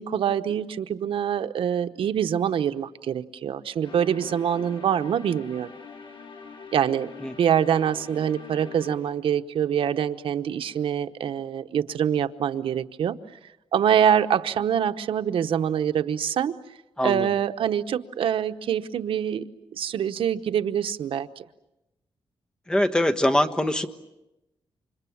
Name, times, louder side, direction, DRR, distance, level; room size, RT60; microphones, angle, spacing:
voice 1, 0.0-5.7 6.7-7.1 7.4-13.2 13.7-16.6 17.0-21.5, right 9 dB, 85° right, 9 dB, 1.0 m, -25 dB
sound 1, 3.8-9.0, left 5 dB, 75° left, 4.9 m, -44 dB
voice 2, 17.0-17.3 22.7-23.9, left 1 dB, 10° left, 6 dB, 1.4 m, -22 dB
29.0 x 26.0 x 7.3 m, 0.94 s
wide cardioid pair, 125°, 9 cm